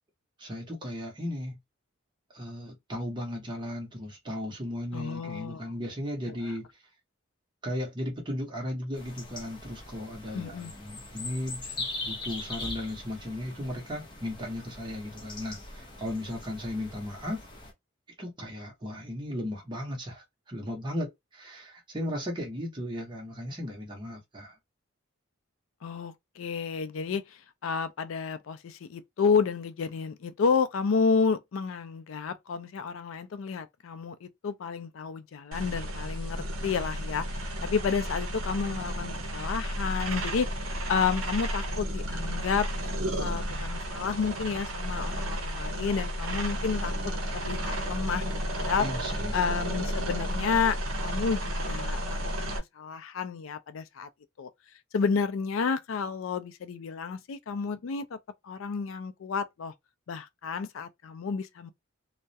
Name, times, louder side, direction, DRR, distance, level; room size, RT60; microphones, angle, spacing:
voice 1, 0.4-1.6 2.3-6.7 7.6-17.4 18.2-24.6 48.8-49.4, left 1 dB, 25° right, 0.8 m, -36 dB
voice 2, 4.9-5.7 6.3-6.5 10.3-10.7 25.8-42.7 43.2-47.1 47.4-48.9 49.3-54.1 54.4-54.5 54.9-58.2 58.4-59.7 60.1-61.7, left 5 dB, 80° left, 0.4 m, -31 dB
sound 1, 9.0-17.7, left 2 dB, 25° left, 0.7 m, -41 dB
sound 2, 35.5-52.6, equal, 85° right, 0.6 m, -32 dB
2.3 x 2.0 x 2.6 m
head